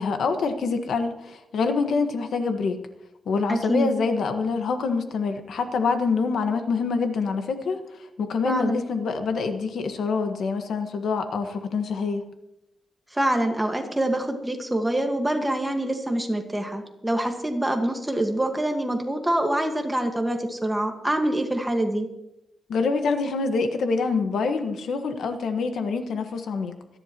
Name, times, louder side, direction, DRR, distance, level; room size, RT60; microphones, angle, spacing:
voice 1, 0.0-2.8 3.3-7.8 8.2-12.3 22.7-26.8, left 4 dB, 85° left, 6 dB, 1.4 m, -26 dB
voice 2, 3.5-3.9 8.4-8.8 13.1-22.1, right 1 dB, 10° right, 4 dB, 1.6 m, -25 dB
26.5 x 11.0 x 3.0 m, 0.88 s
wide cardioid pair, 155°, 0 cm